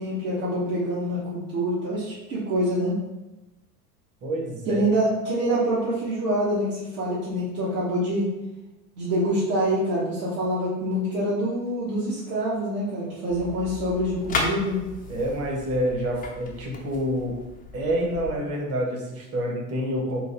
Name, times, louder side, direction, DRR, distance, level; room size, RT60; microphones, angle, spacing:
voice 1, 0.0-3.0 4.6-8.3 9.0-14.8, equal, 60° right, -10 dB, 1.5 m, -26 dB
voice 2, 4.2-4.8 15.1-17.3 17.7-20.2, equal, 30° right, 0 dB, 1.1 m, -27 dB
sound 1, 13.3-18.3, left 3 dB, 15° left, 0.6 m, -35 dB
3.7 x 2.7 x 4.3 m, 1.0 s
figure-of-eight pair, 75°, 49 cm